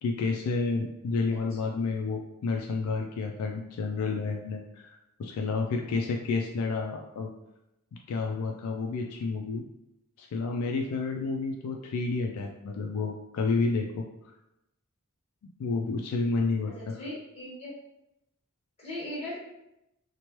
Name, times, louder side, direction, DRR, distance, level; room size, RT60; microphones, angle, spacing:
voice 1, 0.0-7.3 8.1-9.6 10.2-14.3 15.6-17.0, left 4 dB, 75° left, 3 dB, 0.3 m, -30 dB
voice 2, 16.7-17.7 18.8-19.4, left 1 dB, 30° left, -7 dB, 1.2 m, -38 dB
2.9 x 2.1 x 2.9 m, 0.88 s
head